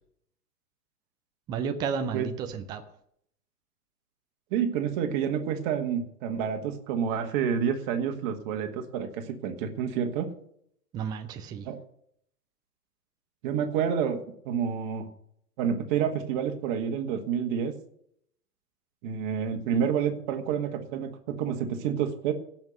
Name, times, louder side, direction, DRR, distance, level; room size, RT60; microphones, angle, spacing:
voice 1, 1.5-2.8 10.9-11.7, right 6 dB, 10° right, 7 dB, 0.6 m, -32 dB
voice 2, 4.5-10.3 11.6-11.8 13.4-15.1 15.6-17.7 19.0-22.3, right 8 dB, 30° right, 5 dB, 1.9 m, -29 dB
16.5 x 6.1 x 6.7 m, 0.67 s
figure-of-eight pair, 110°, 46 cm